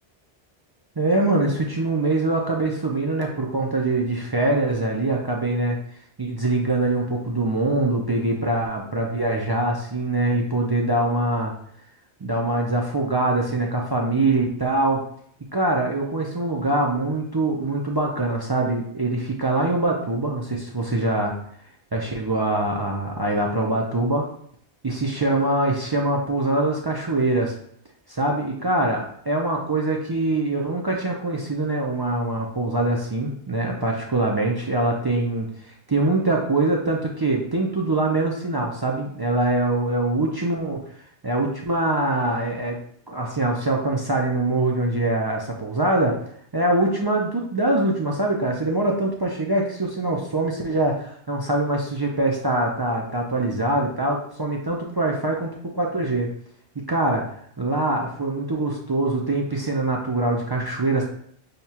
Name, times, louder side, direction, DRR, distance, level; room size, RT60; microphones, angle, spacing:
voice 1, 1.0-5.8 6.2-11.5 12.2-15.0 15.5-21.3 21.9-24.2 24.8-27.5 28.1-35.5 35.9-40.8 41.2-42.8 43.1-46.2 46.5-55.5 55.7-56.3 56.9-57.2 57.6-61.0, right 2 dB, 35° right, -1 dB, 0.4 m, -23 dB
6.4 x 2.3 x 2.8 m, 0.64 s
omnidirectional pair, 1.0 m